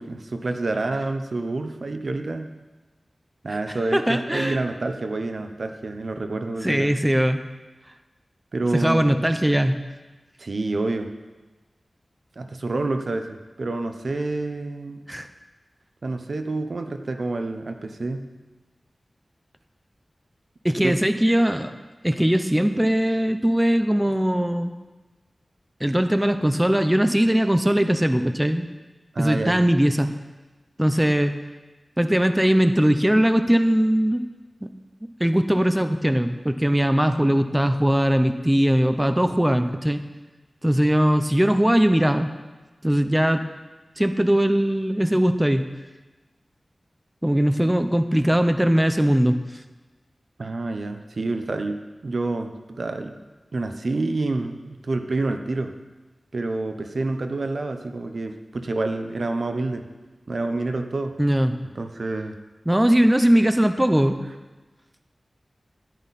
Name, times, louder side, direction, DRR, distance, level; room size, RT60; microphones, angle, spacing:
voice 1, 0.0-2.5 3.4-7.0 8.5-9.2 10.4-11.1 12.4-15.0 16.0-18.3 20.7-21.0 29.1-29.6 50.4-53.2 53.5-55.8 56.3-59.9 60.3-61.2 61.6-62.4, right 2 dB, 70° right, 6 dB, 0.9 m, -28 dB
voice 2, 3.9-4.6 6.6-7.4 8.7-9.8 15.1-15.3 20.6-21.7 22.0-24.7 25.8-28.7 29.2-30.1 30.8-31.3 32.0-34.3 34.6-34.7 35.2-40.0 40.6-42.3 42.8-43.4 44.0-45.7 47.2-49.4 61.2-61.5 62.7-64.2, equal, 10° right, 8 dB, 0.7 m, -20 dB
13.5 x 11.0 x 4.2 m, 1.2 s
wide cardioid pair, 65°, 0 cm